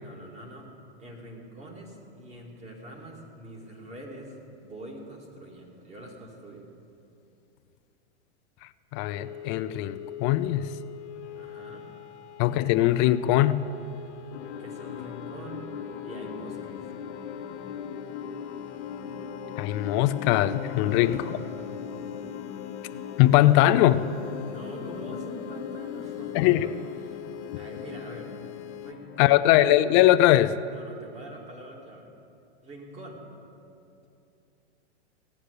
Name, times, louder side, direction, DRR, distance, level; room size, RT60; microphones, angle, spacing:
voice 1, 0.0-6.7 11.3-11.9 14.6-15.7 16.0-16.8 20.7-21.5 24.4-26.7 27.0-27.2 27.5-28.3 28.8-29.5 30.7-32.1 32.6-33.2, right 1 dB, 20° right, 0 dB, 2.4 m, -44 dB
voice 2, 8.9-10.7 12.4-13.6 19.6-21.4 23.2-24.0 26.3-26.7 29.2-30.5, left 14 dB, 35° left, 13 dB, 0.5 m, -21 dB
sound 1, 9.0-28.9, left 13 dB, 80° left, 0.8 m, -44 dB
sound 2, 14.3-29.3, left 7 dB, 60° left, 1.4 m, -39 dB
15.0 x 9.9 x 6.6 m, 2.6 s
hypercardioid pair, 125°, 35 cm